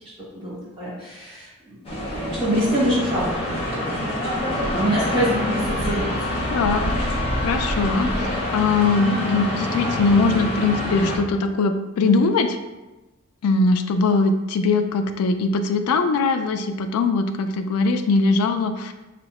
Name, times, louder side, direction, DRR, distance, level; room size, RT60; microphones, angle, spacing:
voice 1, 0.3-4.4 4.7-6.1 6.6-6.9, equal, 20° right, -10 dB, 1.2 m, -26 dB
sound 1, 1.8-11.2, left 1 dB, 25° left, 0.5 m, -26 dB
voice 2, 6.5-6.8 7.4-12.6 13.4-18.9, left 3 dB, 80° left, 9 dB, 0.3 m, -21 dB
2.7 x 2.1 x 4.0 m, 1.1 s
head